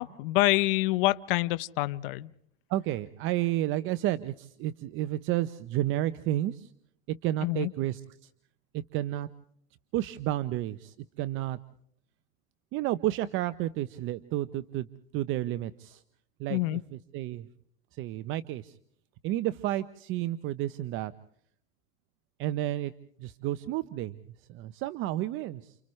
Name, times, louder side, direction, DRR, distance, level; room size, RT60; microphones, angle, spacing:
voice 1, 0.0-2.3 7.4-7.7 16.5-16.8, left 19 dB, 65° left, 15 dB, 0.8 m, -26 dB
voice 2, 2.7-6.7 7.1-8.3 8.7-9.3 9.9-11.6 12.7-14.9 15.1-16.0 16.4-17.5 17.9-18.8 19.2-21.1 22.4-22.9 23.2-25.8, right 14 dB, 45° right, 13 dB, 0.8 m, -31 dB
29.5 x 29.5 x 3.2 m, 0.67 s
supercardioid pair, 130°, 29 cm